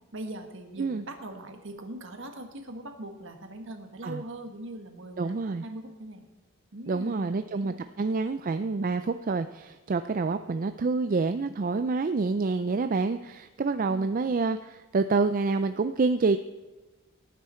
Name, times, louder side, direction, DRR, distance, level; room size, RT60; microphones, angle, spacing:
voice 1, 0.1-6.3 6.7-8.0, right 1 dB, 60° right, 5 dB, 1.6 m, -41 dB
voice 2, 5.2-5.6 6.9-16.4, right 4 dB, 40° right, 10 dB, 0.4 m, -27 dB
18.5 x 9.3 x 4.4 m, 1.1 s
head